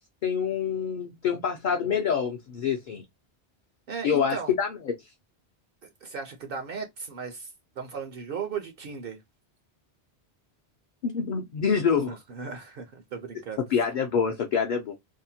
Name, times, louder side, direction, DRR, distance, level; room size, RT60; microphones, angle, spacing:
voice 1, 0.2-3.0 4.0-4.9 11.0-12.2 13.7-14.9, left 7 dB, 55° left, 0.6 m, -26 dB
voice 2, 3.9-4.5 5.8-9.2 12.1-13.6, right 5 dB, 65° right, 0.8 m, -37 dB
2.7 x 2.1 x 2.7 m
omnidirectional pair, 1.1 m